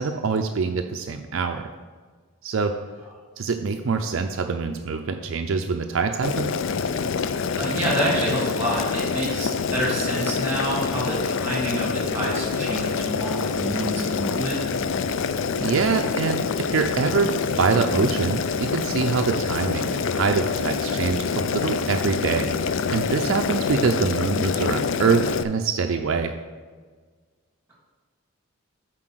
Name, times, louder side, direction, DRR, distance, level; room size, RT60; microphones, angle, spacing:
voice 1, 0.0-1.7 2.4-2.7 3.4-6.5 15.6-17.3 17.6-22.5 22.9-26.3, right 5 dB, 65° right, 5 dB, 0.4 m, -24 dB
Boiling, 6.2-25.4, left 5 dB, 60° left, 0.4 m, -26 dB
voice 2, 7.6-14.6, right 1 dB, 10° right, -4 dB, 2.7 m, -27 dB
7.6 x 4.6 x 6.2 m, 1.5 s
head